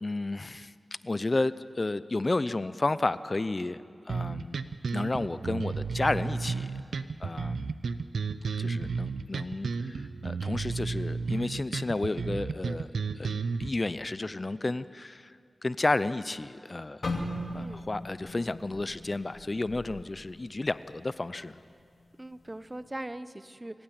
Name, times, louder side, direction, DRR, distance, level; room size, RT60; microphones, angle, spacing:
voice 1, 0.0-0.7 1.0-4.6 4.9-6.7 7.2-7.7 8.6-12.9 13.1-17.1 17.5-21.6, left 2 dB, 40° left, 15 dB, 0.6 m, -32 dB
sound 1, 4.1-13.7, right 4 dB, 90° right, 0.7 m, -32 dB
sound 2, 17.0-21.1 21.4-21.7 22.3-22.7, left 1 dB, 60° left, 2.6 m, -38 dB
voice 2, 22.2-23.8, right 1 dB, 25° right, 13 dB, 1.0 m, -40 dB
25.5 x 16.0 x 8.8 m, 2.3 s
cardioid pair, 45°, 0 cm